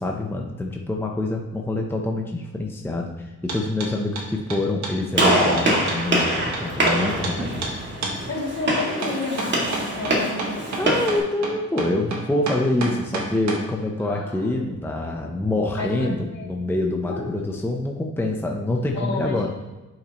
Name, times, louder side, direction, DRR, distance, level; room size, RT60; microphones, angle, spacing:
voice 1, 0.0-7.7 10.8-19.5, left 2 dB, 5° left, 1 dB, 0.7 m, -26 dB
sound 1, 3.5-3.9 4.2-7.0 7.2-7.4 7.6-7.7 8.0-8.2 9.0-13.6, right 3 dB, 65° right, 1.6 m, -29 dB
Gunshot gunfire, 5.1-11.2, right 1 dB, 35° right, 2.3 m, -24 dB
voice 2, 8.3-10.8 14.0-14.5 15.8-16.6 17.1-17.2 18.9-19.5, left 3 dB, 60° left, -4 dB, 2.8 m, -31 dB
9.7 x 5.9 x 3.1 m, 1.1 s
cardioid pair, 95°, 30 cm